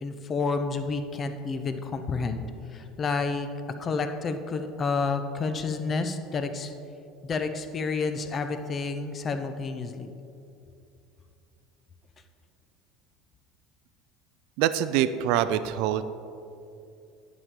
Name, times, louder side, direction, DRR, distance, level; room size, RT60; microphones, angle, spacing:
voice 1, 0.0-2.4 2.7-3.5 3.8-6.7 7.2-10.1, left 4 dB, 35° left, 8 dB, 0.7 m, -30 dB
voice 2, 14.6-16.0, right 11 dB, 65° right, 13 dB, 0.4 m, -25 dB
9.5 x 7.2 x 3.7 m, 2.6 s
hypercardioid pair, 85°, 0 cm